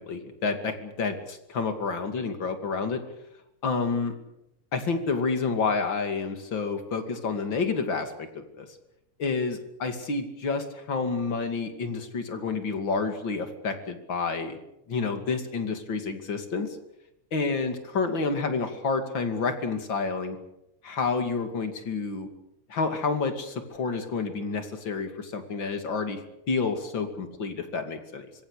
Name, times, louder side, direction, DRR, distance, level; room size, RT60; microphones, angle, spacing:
voice 1, 0.1-3.0 3.6-4.1 4.7-8.3 8.6-8.7 9.2-14.6 14.9-16.8 17.3-20.4 20.8-22.3 22.7-26.2 26.5-28.3, left 4 dB, 40° left, 7 dB, 3.0 m, -29 dB
25.5 x 23.5 x 6.7 m, 0.84 s
omnidirectional pair, 3.7 m